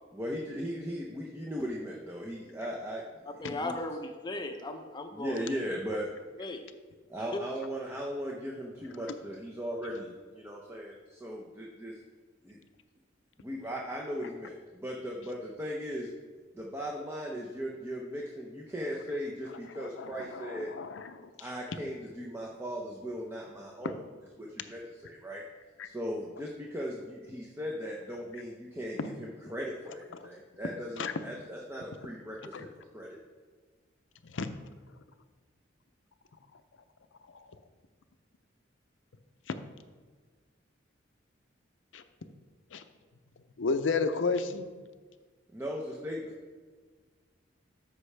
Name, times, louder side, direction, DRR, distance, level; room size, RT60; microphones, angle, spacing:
voice 1, 0.1-3.0 3.4-3.7 5.1-6.0 7.1-11.9 12.4-12.6 13.4-16.1 16.5-20.7 21.4-24.0 24.4-25.4 25.8-32.7 32.9-33.2 45.5-46.3, equal, 15° right, -2 dB, 0.7 m, -38 dB
voice 2, 3.4-5.4 6.4-6.6, left 2 dB, 25° left, 5 dB, 0.7 m, -37 dB
voice 3, 19.7-21.3 25.8-25.9 29.0-29.1 31.0-31.1 32.5-32.7 34.3-34.6 41.9-42.0 42.7-42.8 43.6-44.7, left 4 dB, 85° left, 9 dB, 0.6 m, -32 dB
13.0 x 5.5 x 3.3 m, 1.5 s
head